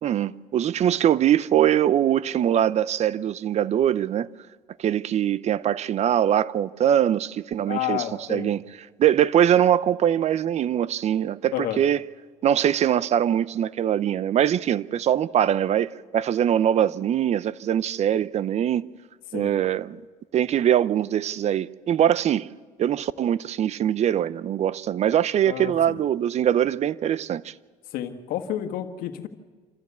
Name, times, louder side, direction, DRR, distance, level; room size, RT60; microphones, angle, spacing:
voice 1, 0.0-4.3 4.8-8.6 9.0-12.0 12.4-18.9 19.3-20.0 20.3-22.5 22.8-27.5, right 10 dB, 50° right, 0.6 m, -22 dB
voice 2, 7.6-8.5 11.5-11.8 19.3-19.5 25.4-26.0 27.9-29.3, left 11 dB, 80° left, 1.6 m, -30 dB
27.0 x 14.0 x 8.3 m
cardioid pair, 95°, 14 cm